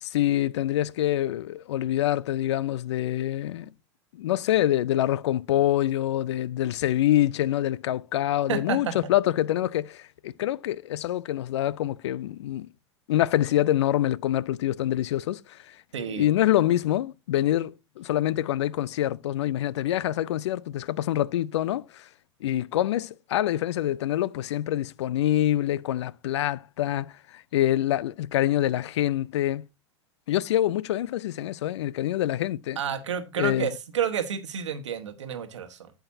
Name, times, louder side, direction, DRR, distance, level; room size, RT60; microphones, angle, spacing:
voice 1, 0.0-3.7 4.1-12.7 13.1-15.8 16.1-22.1 22.4-29.6 30.3-32.8 33.4-33.7, left 13 dB, 70° left, 0.4 m, -26 dB
voice 2, 8.5-8.9 15.9-16.3 32.8-35.9, right 8 dB, 80° right, 1.3 m, -30 dB
8.7 x 8.0 x 2.7 m
hypercardioid pair, 100°, 15 cm